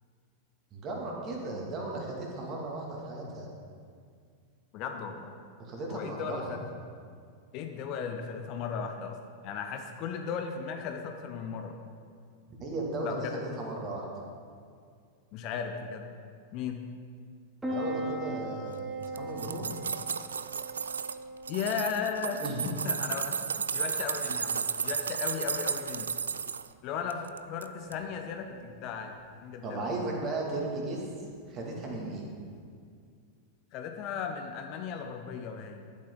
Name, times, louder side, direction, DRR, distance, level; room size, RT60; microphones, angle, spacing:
voice 1, 0.7-3.5 5.6-6.5 12.6-14.1 17.7-19.8 22.4-22.7 29.6-31.0 31.5-32.3, right 2 dB, 30° right, -2 dB, 2.4 m, -36 dB
voice 2, 4.7-5.3 5.9-6.7 7.5-9.2 9.4-11.8 13.0-13.4 15.3-16.1 16.5-16.8 21.5-26.1 26.8-29.1 29.4-29.8 33.7-36.0, left 6 dB, 40° left, 5 dB, 0.8 m, -36 dB
Piano, 17.6-32.6, right 1 dB, 5° right, 2.3 m, -42 dB
sound 1, 19.0-21.2 21.5-26.7 27.1-27.7 27.9-28.0, right 6 dB, 70° right, 0.3 m, -33 dB
11.5 x 8.7 x 3.9 m, 2.2 s
figure-of-eight pair, 90°, 0 cm